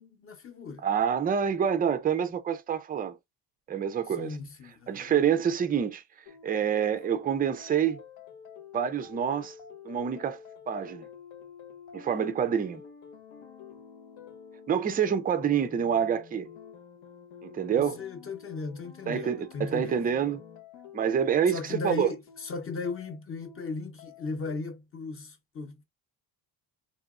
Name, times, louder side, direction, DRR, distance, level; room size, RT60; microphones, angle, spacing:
voice 1, 0.0-0.9 4.2-5.2 17.7-20.0 21.5-25.8, left 4 dB, 25° left, 0.7 m, -37 dB
voice 2, 0.8-3.2 3.7-4.4 4.9-6.0 6.4-8.0 8.7-9.5 9.9-10.4 10.7-11.1 11.9-12.8 14.7-16.5 17.4-18.0 19.1-20.4 20.9-22.1, right 8 dB, 20° right, 0.3 m, -27 dB
sound 1, 6.3-24.6, left 7 dB, 65° left, 1.2 m, -49 dB
3.9 x 3.0 x 2.4 m
cardioid pair, 150°, 48 cm